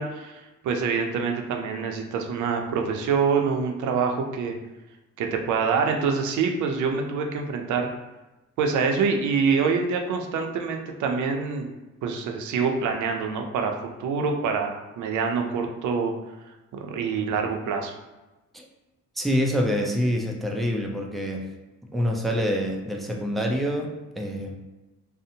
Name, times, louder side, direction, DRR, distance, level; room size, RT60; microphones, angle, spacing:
voice 1, 0.0-4.5 5.2-7.9 8.6-11.7 12.0-13.7 14.0-16.1 16.7-17.9, right 5 dB, 75° right, 3 dB, 0.5 m, -26 dB
voice 2, 19.2-21.5 21.9-24.6, equal, ahead, 1 dB, 0.3 m, -26 dB
2.6 x 2.0 x 2.7 m, 1.1 s
cardioid pair, 90°, 30 cm